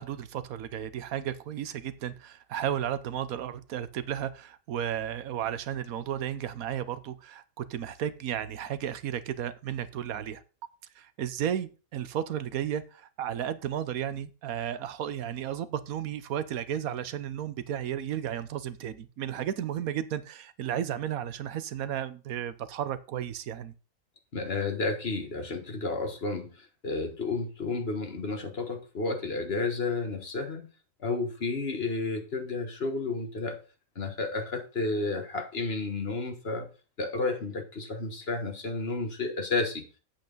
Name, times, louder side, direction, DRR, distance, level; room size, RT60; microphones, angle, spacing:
voice 1, 0.0-10.4 10.9-23.7, right 10 dB, 85° right, 1.2 m, -33 dB
voice 2, 24.3-30.7 31.0-33.6 33.9-36.7 37.0-39.8, left 3 dB, 45° left, 1.6 m, -31 dB
8.6 x 8.2 x 3.9 m
omnidirectional pair, 1.5 m